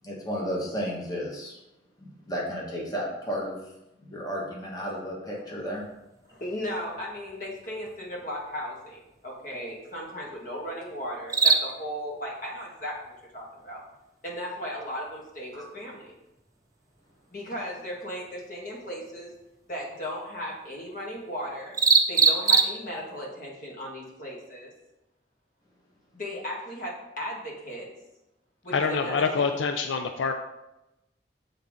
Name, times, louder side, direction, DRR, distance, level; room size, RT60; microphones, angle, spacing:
voice 1, 0.0-1.6 2.0-3.6 4.0-5.8 15.5-15.7, equal, 20° left, -3 dB, 1.2 m, -33 dB
sound 1, 5.7-23.2, right 5 dB, 20° right, 0.3 m, -31 dB
voice 2, 6.3-13.8 14.2-16.1 17.3-19.3 19.7-21.8 22.1-24.7 26.1-27.9 28.6-29.3, equal, 45° left, -3 dB, 1.6 m, -36 dB
voice 3, 28.7-30.3, left 5 dB, 85° left, 6 dB, 0.4 m, -26 dB
6.9 x 3.9 x 3.6 m, 0.92 s
head